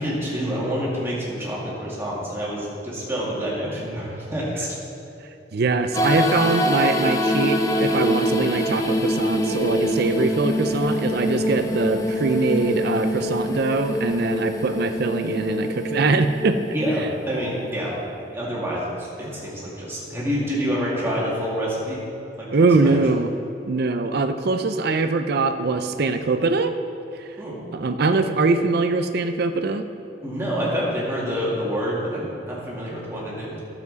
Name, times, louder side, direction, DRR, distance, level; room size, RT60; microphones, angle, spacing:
voice 1, 0.0-4.8 16.7-18.0 18.3-22.0 22.4-23.0 27.4-27.6 30.2-33.6, equal, 15° right, -6 dB, 2.2 m, -27 dB
voice 2, 5.5-16.6 22.5-23.3 23.6-26.7 27.2-27.3 27.7-29.8, right 3 dB, 60° right, 8 dB, 0.5 m, -22 dB
sound 1, 5.9-17.7, equal, 20° left, 0.7 m, -24 dB
12.0 x 7.1 x 4.1 m, 2.7 s
head